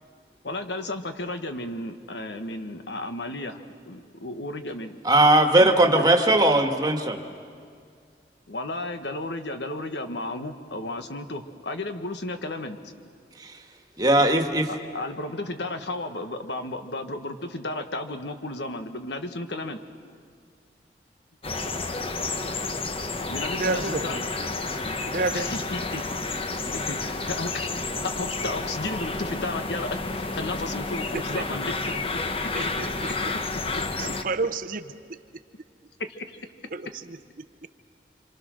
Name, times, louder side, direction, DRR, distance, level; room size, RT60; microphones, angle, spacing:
voice 1, 0.4-3.6 3.9-5.0 5.6-6.1 8.5-12.8 14.9-19.8 23.3-24.2 25.3-26.0 26.3-27.7 28.0-32.5 36.0-36.4, left 2 dB, 75° left, 7 dB, 1.5 m, -33 dB
voice 2, 5.0-7.2 13.4-13.5 14.0-14.7, right 1 dB, 20° right, 4 dB, 1.7 m, -19 dB
sound 1, 21.4-34.2, left 3 dB, 30° left, 1.0 m, -30 dB
voice 3, 23.6-24.2 25.1-25.5 31.1-31.4 32.5-32.9 34.0-35.2 36.7-37.2, right 3 dB, 50° right, 9 dB, 0.8 m, -30 dB
27.0 x 26.5 x 6.4 m, 2.2 s
head